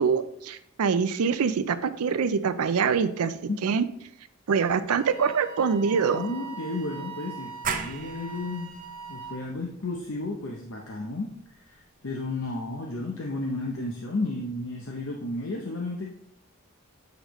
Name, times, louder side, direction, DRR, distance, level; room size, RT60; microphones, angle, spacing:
voice 1, 0.0-3.8 4.5-6.2, right 6 dB, 90° right, 12 dB, 0.5 m, -25 dB
Wind instrument woodwind instrument, 5.0-9.4, right 6 dB, 55° right, 1.1 m, -41 dB
voice 2, 6.1-8.7 9.1-16.1, left 2 dB, 60° left, 0 dB, 0.7 m, -33 dB
sound 1, 7.6-13.0, right 6 dB, 40° right, 0.5 m, -39 dB
8.0 x 5.1 x 3.1 m, 0.74 s
head